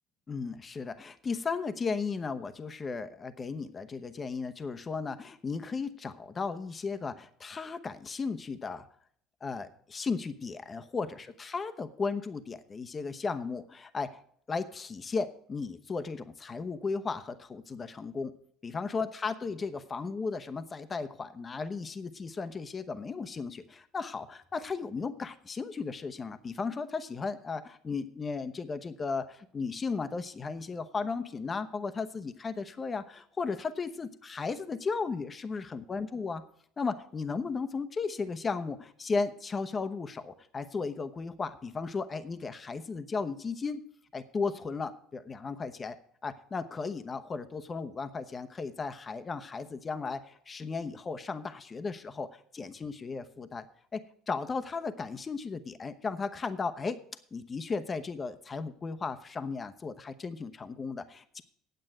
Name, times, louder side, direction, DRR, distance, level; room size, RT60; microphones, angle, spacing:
voice 1, 0.3-8.9 9.4-14.2 14.5-18.3 18.6-36.5 36.8-43.8 44.1-46.0 46.2-53.7 53.9-57.0 57.3-61.4, left 4 dB, 30° left, 11 dB, 1.0 m, -35 dB
9.3 x 7.7 x 7.5 m, 0.65 s
supercardioid pair, 80°, 0 cm